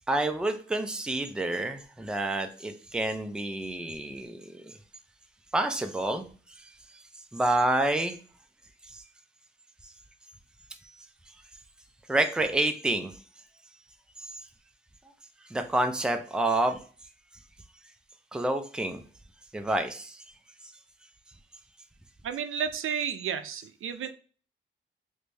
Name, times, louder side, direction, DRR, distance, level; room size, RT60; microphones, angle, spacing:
voice 1, 0.1-4.7 5.5-6.3 7.3-8.2 8.9-9.0 12.1-13.1 15.5-16.8 18.3-19.0 19.5-20.2, right 2 dB, 5° right, 6 dB, 0.4 m, -28 dB
voice 2, 22.2-24.1, right 8 dB, 85° right, 10 dB, 0.4 m, -32 dB
3.2 x 2.6 x 3.2 m, 0.40 s
wide cardioid pair, 130°, 21 cm